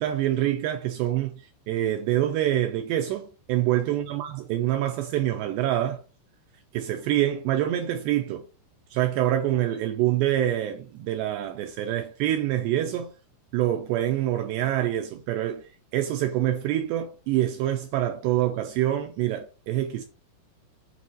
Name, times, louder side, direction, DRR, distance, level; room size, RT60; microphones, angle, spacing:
voice 1, 0.0-6.0 6.7-8.5 8.9-13.1 13.5-15.6 15.9-20.0, right 12 dB, 85° right, 2.5 m, -26 dB
8.2 x 4.2 x 6.1 m
omnidirectional pair, 5.6 m